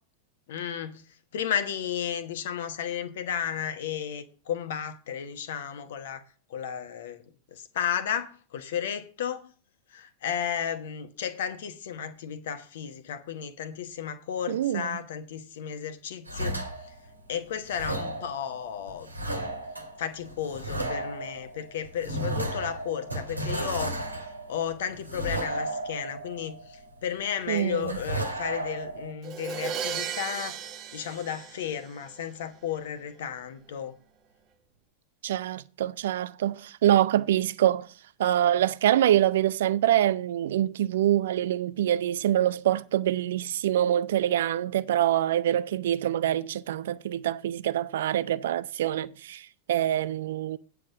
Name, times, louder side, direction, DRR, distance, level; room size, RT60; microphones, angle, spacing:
voice 1, 0.5-1.0 1.3-6.2 6.5-7.2 7.5-9.5 9.9-16.6 17.3-19.1 20.0-24.0 24.5-30.6 30.9-33.9, left 8 dB, 55° left, 1.1 m, -33 dB
voice 2, 14.5-15.0 27.5-28.0 35.2-37.9 38.2-50.6, right 12 dB, 60° right, 0.5 m, -25 dB
sound 1, 16.3-17.3 17.7-27.2 27.6-29.1, right 1 dB, 85° right, 1.5 m, -34 dB
Crash cymbal, 29.2-32.2, right 7 dB, 35° right, 1.0 m, -35 dB
9.2 x 5.9 x 6.2 m
figure-of-eight pair, 90°, 0 cm